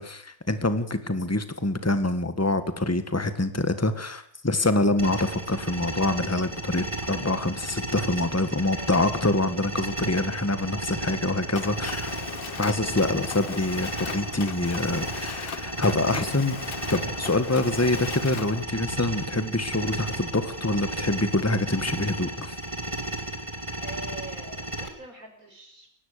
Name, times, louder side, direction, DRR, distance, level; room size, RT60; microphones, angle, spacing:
voice 1, 0.0-12.1 12.6-16.6 16.9-22.6, left 2 dB, 10° left, 10 dB, 1.6 m, -26 dB
sound 1, 5.0-24.9, right 1 dB, 20° right, 2.8 m, -34 dB
Mechanisms, 11.5-18.6, left 6 dB, 45° left, 1.1 m, -38 dB
voice 2, 23.8-25.9, right 1 dB, 70° right, 5 dB, 5.8 m, -44 dB
22.0 x 18.5 x 6.7 m, 0.64 s
omnidirectional pair, 1.5 m